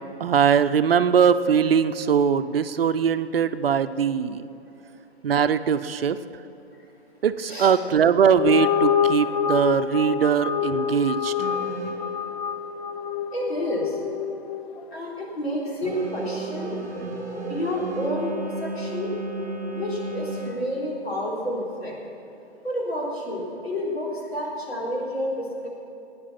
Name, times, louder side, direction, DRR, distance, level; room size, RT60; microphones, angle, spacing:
voice 1, 0.2-4.5 5.2-6.2 7.2-11.3, right 7 dB, 60° right, 12 dB, 0.7 m, -21 dB
sound 1, 8.3-14.8, left 8 dB, 40° left, 0.7 m, -26 dB
sound 2, 11.4-12.3 15.8-20.5, right 2 dB, ahead, 0.3 m, -33 dB
voice 2, 13.3-13.9 14.9-16.8 17.5-19.1 19.7-21.9 22.6-25.7, equal, 65° left, -3 dB, 4.0 m, -29 dB
17.5 x 9.7 x 5.8 m, 2.9 s
figure-of-eight pair, 135°, 33 cm